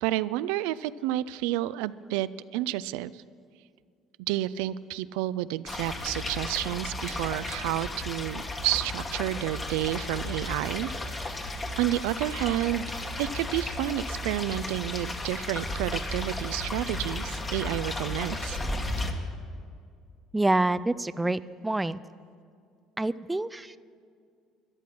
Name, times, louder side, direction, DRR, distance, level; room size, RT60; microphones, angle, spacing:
voice 1, 0.0-3.2 4.3-10.9 11.8-12.9 13.2-18.6, right 14 dB, 85° right, 16 dB, 0.3 m, -30 dB
sound 1, 5.7-19.1, left 2 dB, 25° left, 1.5 m, -34 dB
voice 2, 20.3-22.0 23.0-23.8, right 2 dB, 10° right, 15 dB, 0.4 m, -27 dB
13.0 x 10.5 x 6.0 m, 2.2 s
supercardioid pair, 90°, 0 cm